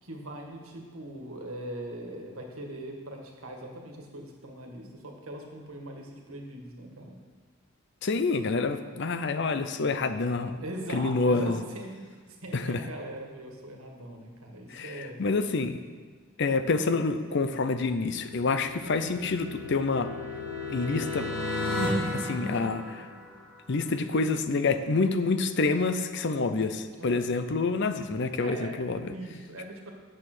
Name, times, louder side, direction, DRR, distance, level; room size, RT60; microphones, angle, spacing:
voice 1, 0.0-7.2 10.6-15.2 26.9-27.2 28.4-28.8 29.1-29.9, right 1 dB, 85° right, 1 dB, 1.7 m, -41 dB
voice 2, 8.0-10.6 10.9-11.6 12.5-12.8 14.7-15.8 16.4-20.1 20.7-21.3 22.1-23.1 23.7-29.1, left 3 dB, 55° left, 10 dB, 0.6 m, -27 dB
sound 1, 17.9-23.6, left 2 dB, 85° left, 2.8 m, -34 dB
8.8 x 7.4 x 6.1 m, 1.5 s
head